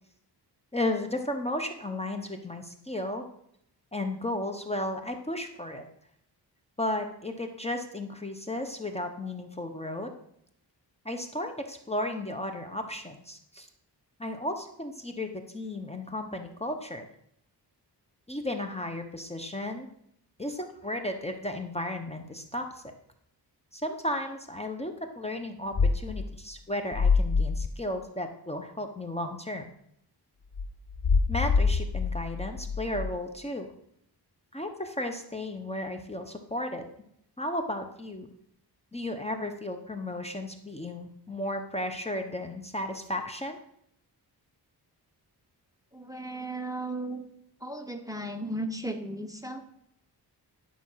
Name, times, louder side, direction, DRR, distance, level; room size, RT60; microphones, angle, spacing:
voice 1, 0.7-3.2 3.9-5.9 6.8-10.1 11.0-13.7 14.2-17.1 18.3-19.9 20.4-22.9 23.7-29.7 31.3-33.7 34.5-36.8 37.4-38.3 38.9-43.6, left 1 dB, 15° left, 5 dB, 1.0 m, -34 dB
sound 1, 25.8-26.3 26.9-27.7 30.5-33.1, left 4 dB, 40° left, 0.6 m, -25 dB
voice 2, 45.9-47.2 47.6-49.6, right 1 dB, 10° right, 5 dB, 1.0 m, -35 dB
11.5 x 6.0 x 5.7 m, 0.72 s
wide cardioid pair, 105°, 41 cm